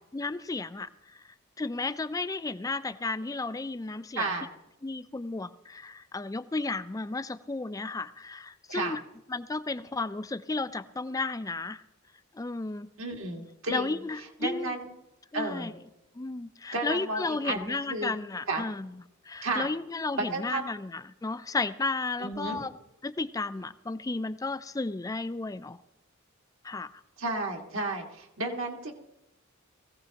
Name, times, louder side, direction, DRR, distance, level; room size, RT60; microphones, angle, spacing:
voice 1, 0.1-0.9 1.6-4.3 4.8-9.0 9.3-11.8 12.3-12.9 13.7-14.7 15.3-15.7 16.2-18.9 19.3-22.7 23.0-25.8 26.6-27.0, left 3 dB, 15° left, 13 dB, 0.4 m, -33 dB
voice 2, 4.1-4.5 8.7-9.0 13.0-14.0 14.4-14.9 15.3-15.7 16.7-18.1 18.5-18.7 19.4-19.7 20.2-20.6 22.2-22.6 27.2-28.9, right 2 dB, 70° right, 1 dB, 1.8 m, -32 dB
20.5 x 15.5 x 2.9 m, 0.92 s
head